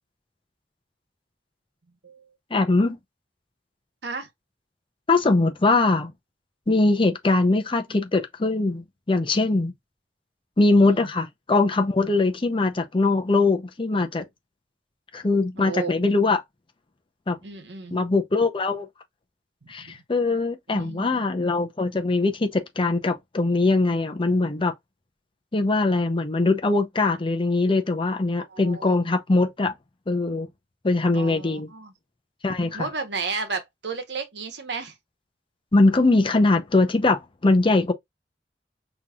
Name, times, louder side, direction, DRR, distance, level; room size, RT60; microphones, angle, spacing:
voice 1, 2.5-3.0 5.1-6.1 6.7-9.7 10.6-14.2 15.1-16.4 17.3-17.4 17.9-18.9 19.7-24.7 25.5-29.7 30.1-30.5 30.8-31.7 32.4-32.9 35.7-37.9, left 3 dB, 30° left, 0.7 m, -22 dB
voice 2, 15.6-16.0 17.4-18.0 19.8-20.0 20.7-21.2 28.5-29.0 31.1-31.9 32.7-34.9, right 4 dB, 80° right, 1.1 m, -33 dB
5.7 x 3.0 x 2.4 m
head